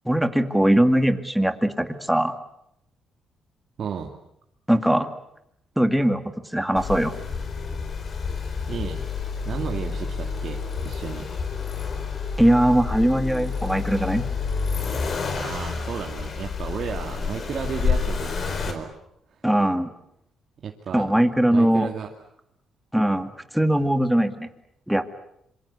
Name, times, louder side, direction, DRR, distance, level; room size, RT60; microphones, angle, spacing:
voice 1, 0.1-2.4 4.7-5.1 5.8-6.2 6.5-7.2 12.4-14.2 19.4-19.9 20.9-21.9 22.9-24.5 24.9-25.0, right 1 dB, 5° right, 8 dB, 2.2 m, -20 dB
voice 2, 3.8-4.1 8.4-9.1 9.4-11.3 15.3-18.9 19.3-19.4 20.6-21.2 21.5-22.1, right 7 dB, 55° right, 2 dB, 2.3 m, -33 dB
Accelerating revving vroom, 6.8-18.7, left 5 dB, 50° left, 4.4 m, -29 dB
26.5 x 24.0 x 8.3 m, 0.76 s
cardioid pair, 90°, 0 cm